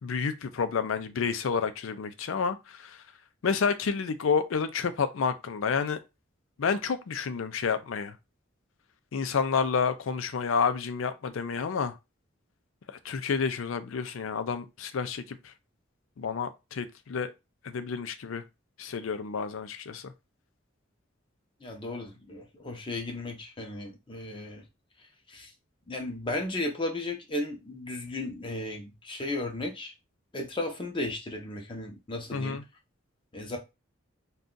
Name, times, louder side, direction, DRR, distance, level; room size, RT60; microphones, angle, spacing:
voice 1, 0.0-3.0 3.4-6.0 6.6-8.1 9.1-11.9 12.9-15.5 16.2-17.3 17.6-18.4 18.8-20.1 32.3-32.6, left 5 dB, 80° left, 0.4 m, -30 dB
voice 2, 21.6-24.6 25.3-25.5 25.9-29.9 30.3-32.6 33.3-33.6, left 2 dB, 25° left, 0.6 m, -35 dB
2.6 x 2.3 x 3.7 m
head